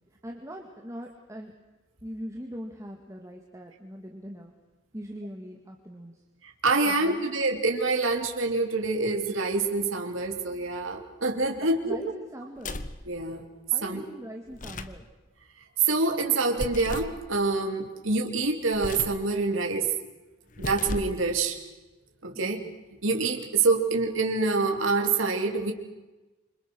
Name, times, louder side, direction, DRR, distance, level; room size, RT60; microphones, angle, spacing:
voice 1, 0.2-1.5 2.0-4.5 4.9-6.1 6.9-7.3 11.9-12.8 13.7-15.1 22.3-22.7, equal, 15° right, 2 dB, 2.2 m, -41 dB
voice 2, 6.6-12.0 13.1-13.4 13.8-14.0 15.8-19.9 20.6-21.6 22.2-22.6 23.0-25.7, right 3 dB, 85° right, 2 dB, 3.4 m, -26 dB
sound 1, 12.6-13.0 14.5-15.0 16.6-17.2 18.7-19.2 20.5-21.2, left 2 dB, 40° left, 1.4 m, -35 dB
28.0 x 26.0 x 6.4 m, 1.1 s
head